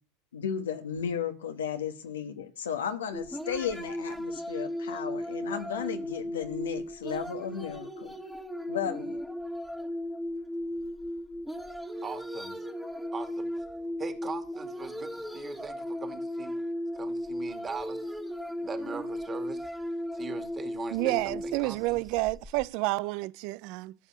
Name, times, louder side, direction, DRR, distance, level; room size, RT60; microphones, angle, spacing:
voice 1, 0.3-8.1 8.7-9.2, left 8 dB, 85° left, 1.4 m, -34 dB
sound 1, 3.1-22.7, left 1 dB, ahead, 1.5 m, -36 dB
voice 2, 12.0-12.6 13.1-13.5 14.0-16.6 16.9-18.1 18.6-19.7 20.1-22.0, right 5 dB, 25° right, 2.1 m, -41 dB
voice 3, 20.9-23.9, right 21 dB, 60° right, 0.5 m, -30 dB
14.0 x 5.4 x 8.4 m
hypercardioid pair, 90°, 0 cm